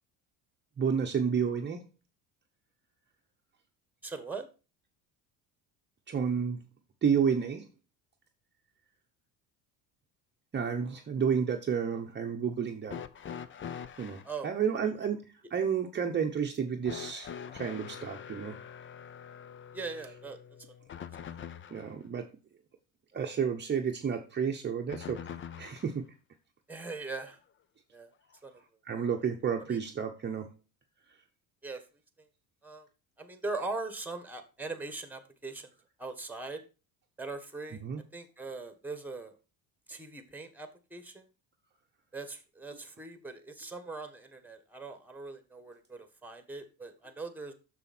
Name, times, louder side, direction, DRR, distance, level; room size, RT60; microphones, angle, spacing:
voice 1, 0.8-1.8 6.1-6.6 7.0-7.6 10.5-13.0 14.0-18.6 21.7-22.3 23.1-25.2 25.6-26.0 28.8-30.5 37.8-38.0, right 7 dB, 25° right, 2 dB, 0.9 m, -31 dB
voice 2, 4.0-4.5 14.2-14.5 19.7-20.4 26.7-27.4 27.9-28.1 28.4-28.6 29.7-29.8 31.6-31.8 32.6-32.9 33.2-35.7 36.0-36.6 37.2-37.8 38.1-39.3 39.9-41.3 42.1-47.5, right 3 dB, 5° right, 9 dB, 1.5 m, -40 dB
sound 1, 12.9-14.3 16.8-21.9 24.9-26.0 27.2-27.3 28.3-28.4, left 8 dB, 30° left, 0.6 m, -44 dB
6.9 x 6.5 x 4.3 m, 0.32 s
supercardioid pair, 105°, 41 cm